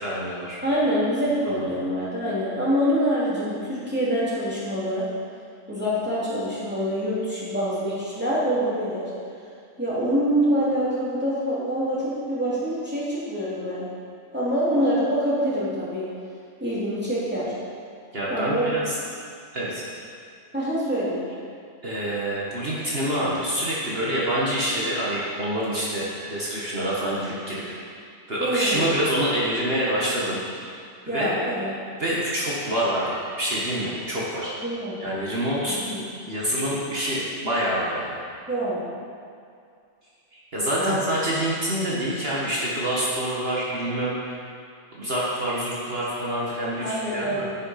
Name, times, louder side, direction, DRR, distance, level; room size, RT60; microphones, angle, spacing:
voice 1, 0.0-0.6 1.6-1.7 18.1-18.9 19.5-19.9 21.8-28.0 28.3-30.7 31.1-31.3 32.0-34.5 35.0-35.8 36.3-38.1 40.3-44.4 44.9-47.4, right 1 dB, 45° right, -7 dB, 1.9 m, -26 dB
voice 2, 0.6-5.1 5.7-9.1 9.8-13.8 14.3-16.1 16.6-17.5 18.3-18.7 20.5-21.2 28.4-28.9 31.0-31.7 34.6-35.0 35.8-36.0 38.5-38.9 40.7-41.1 46.8-47.5, equal, 5° right, -10 dB, 3.1 m, -25 dB
10.5 x 8.8 x 5.8 m, 2.3 s
omnidirectional pair, 1.4 m